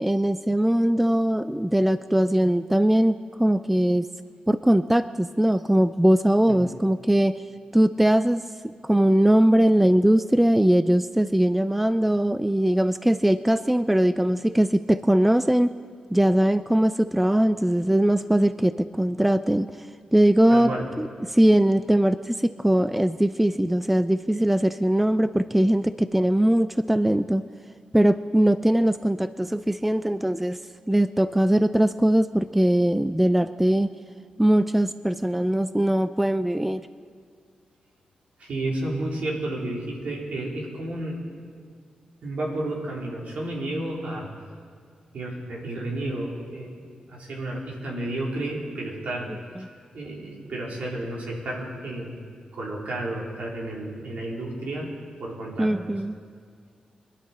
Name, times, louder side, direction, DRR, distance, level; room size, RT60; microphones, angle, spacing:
voice 1, 0.0-4.1 4.5-7.4 7.7-8.4 8.8-15.7 16.1-20.7 21.0-21.1 21.3-27.4 27.9-30.6 30.9-33.9 34.4-36.9 55.6-56.2, right 1 dB, 5° right, 13 dB, 0.3 m, -21 dB
voice 2, 20.5-20.8 38.4-41.2 42.2-44.3 45.1-49.3 49.9-52.2 52.5-54.9 55.2-55.9, right 1 dB, 65° right, -3 dB, 3.5 m, -31 dB
24.0 x 11.5 x 4.2 m, 2.1 s
wide cardioid pair, 110°, 3 cm